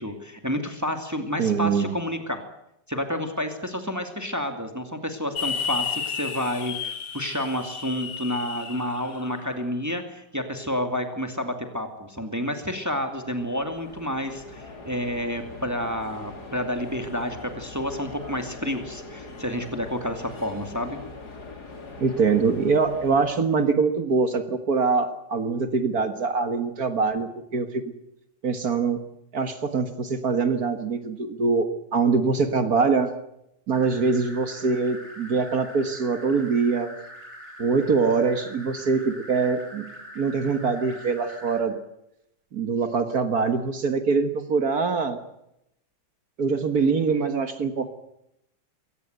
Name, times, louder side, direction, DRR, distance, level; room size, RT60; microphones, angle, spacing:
voice 1, 0.0-2.4 2.9-21.0, left 1 dB, 10° right, 6 dB, 2.4 m, -30 dB
voice 2, 1.4-2.0 22.0-27.8 28.4-29.1 29.3-33.1 33.7-37.0 37.6-39.9 40.2-41.8 42.5-45.2 46.4-47.9, right 4 dB, 55° right, 9 dB, 2.0 m, -23 dB
sound 1, 5.4-9.5, left 6 dB, 85° left, 2.8 m, -32 dB
sound 2, 12.5-23.3, left 3 dB, 55° left, 3.5 m, -42 dB
sound 3, 33.7-41.6, equal, 15° left, 5.9 m, -43 dB
22.5 x 18.5 x 8.0 m, 0.81 s
omnidirectional pair, 2.0 m